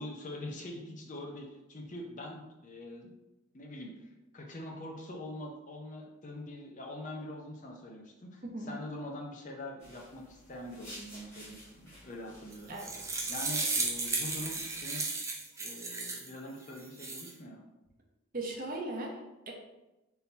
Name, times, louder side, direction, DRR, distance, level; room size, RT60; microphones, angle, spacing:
voice 1, 0.0-3.1 3.5-12.8 13.3-15.0 15.6-17.6, left 1 dB, 35° left, 0 dB, 0.6 m, -44 dB
sound 1, 9.8-14.9, equal, 15° left, 1.5 m, -53 dB
sound 2, 12.5-16.3 16.8-17.3, right 3 dB, 15° right, 0.4 m, -34 dB
voice 2, 18.3-19.5, right 2 dB, 40° right, 0 dB, 0.7 m, -38 dB
3.8 x 2.8 x 4.0 m, 1.0 s
head